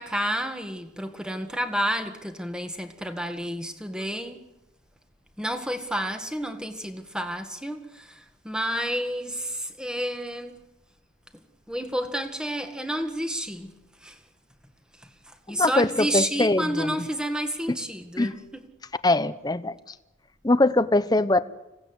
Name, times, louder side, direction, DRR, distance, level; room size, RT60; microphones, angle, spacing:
voice 1, 0.0-4.4 5.4-10.6 11.7-14.2 15.3-18.7, equal, 5° right, 1.8 m, -30 dB
voice 2, 15.5-17.1 17.7-17.8 18.2-18.3 19.0-19.7 20.4-21.4, left 2 dB, 20° left, 0.8 m, -22 dB
27.0 x 17.5 x 8.1 m
head